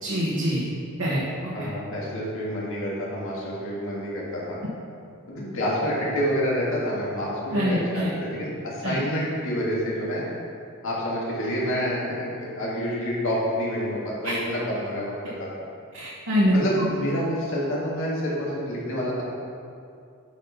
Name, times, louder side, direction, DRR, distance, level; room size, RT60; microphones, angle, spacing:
voice 1, 0.0-0.6 1.0-1.2 1.6-1.7 7.5-8.1 8.8-9.0 14.2-14.4 15.9-16.9, equal, 65° right, -6 dB, 1.0 m, -24 dB
voice 2, 1.5-4.6 5.3-10.2 10.8-15.5 16.5-19.2, equal, 65° left, -5 dB, 1.6 m, -28 dB
7.5 x 4.1 x 5.5 m, 2.4 s
head